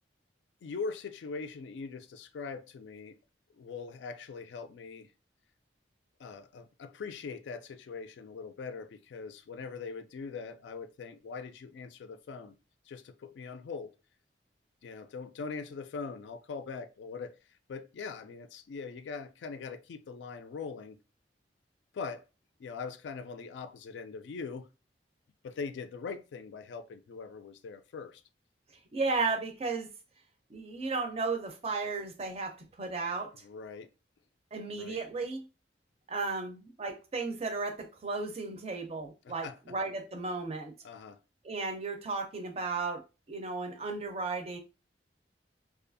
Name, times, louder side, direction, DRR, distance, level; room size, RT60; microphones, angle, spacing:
voice 1, 0.6-3.2 3.5-5.1 6.2-12.5 12.9-13.9 14.8-17.4 17.7-21.0 21.9-22.2 22.6-24.7 25.4-28.2 33.4-33.9 34.7-35.0 39.2-39.6 40.8-41.2, left 5 dB, 75° left, 0.3 m, -41 dB
voice 2, 28.9-29.9 30.5-33.3 34.5-35.5 36.1-40.7 41.4-43.0 43.3-44.6, right 3 dB, 35° right, 0.5 m, -34 dB
2.6 x 2.3 x 2.5 m
head